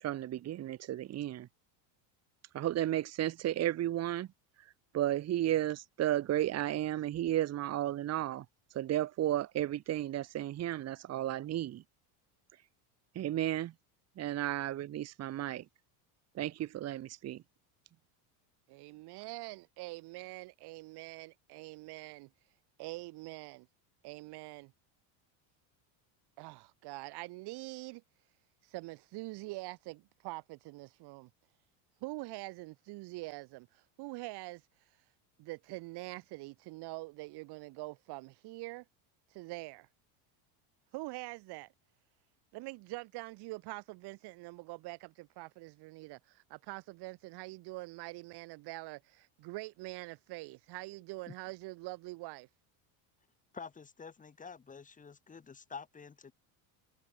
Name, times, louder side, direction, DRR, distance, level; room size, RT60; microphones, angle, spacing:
voice 1, 0.0-1.5 2.5-4.3 4.9-8.5 8.7-11.8 13.2-13.7 14.2-15.6 16.4-17.4, right 13 dB, 30° right, 2.0 m, -33 dB
voice 2, 18.7-22.3 22.8-23.7 24.0-24.7 26.4-28.0 28.7-31.3 32.0-33.7 34.0-34.6 35.4-38.8 39.3-39.9 40.9-41.7 42.5-52.5, right 22 dB, 50° right, 5.0 m, -44 dB
voice 3, 53.5-56.3, left 5 dB, 15° left, 6.9 m, -48 dB
cardioid pair, 165°, 49 cm